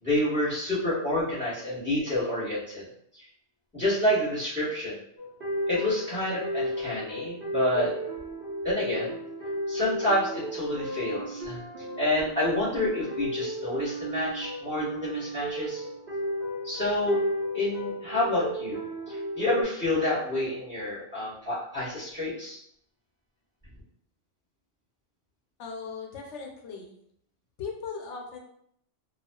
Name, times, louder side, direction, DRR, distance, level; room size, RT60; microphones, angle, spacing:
voice 1, 0.0-2.8 3.1-3.2 3.7-5.0 5.7-7.9 8.6-9.2 9.7-11.6 12.0-15.8 16.6-17.2 17.5-18.8 19.1-22.6, left 1 dB, 10° left, -10 dB, 1.2 m, -28 dB
sound 1, 5.2-19.6, equal, 55° right, 1.0 m, -34 dB
voice 2, 25.6-26.9 27.6-28.4, left 5 dB, 80° left, 1 dB, 0.9 m, -38 dB
2.4 x 2.3 x 2.2 m, 0.71 s
omnidirectional pair, 1.2 m